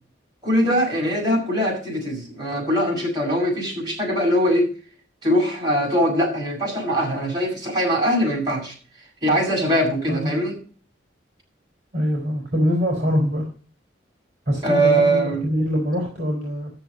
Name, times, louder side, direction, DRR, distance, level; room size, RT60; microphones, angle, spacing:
voice 1, 0.4-4.7 5.2-8.7 9.2-10.6 14.6-15.4, equal, 20° right, -2 dB, 7.4 m, -21 dB
voice 2, 11.9-13.5 14.5-16.7, equal, 40° right, -1 dB, 4.6 m, -23 dB
13.5 x 7.2 x 6.7 m, 0.40 s
head